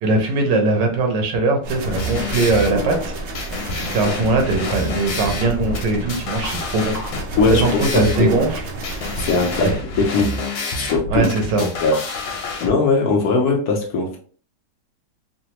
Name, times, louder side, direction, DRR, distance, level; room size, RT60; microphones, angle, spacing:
voice 1, 0.0-3.1 3.7-7.0 7.6-8.6 9.6-9.8 11.1-11.7, right 3 dB, 85° right, 1.5 m, -20 dB
sound 1, 1.6-9.8, right 2 dB, 65° right, 0.6 m, -32 dB
sound 2, 1.7-12.7, left 2 dB, 90° left, 1.4 m, -28 dB
voice 2, 7.4-8.4 9.2-10.4 10.7-11.3 11.6-12.0 12.6-14.2, left 3 dB, 65° left, 1.2 m, -20 dB
3.9 x 2.0 x 2.9 m
omnidirectional pair, 1.9 m